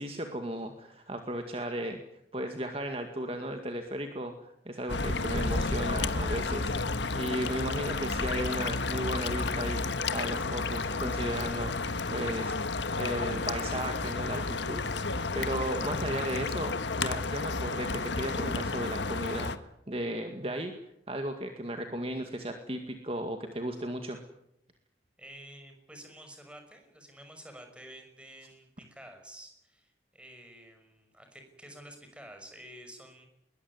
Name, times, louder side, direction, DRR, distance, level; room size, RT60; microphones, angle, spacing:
voice 1, 0.0-2.0 2.3-9.9 10.1-12.6 12.9-20.7 21.1-24.2, right 1 dB, 30° right, 5 dB, 2.1 m, -35 dB
sound 1, 4.9-19.6, left 3 dB, 80° left, 1.4 m, -31 dB
voice 2, 25.2-33.3, right 1 dB, 5° right, 5 dB, 5.7 m, -50 dB
21.5 x 21.0 x 9.7 m, 0.79 s
head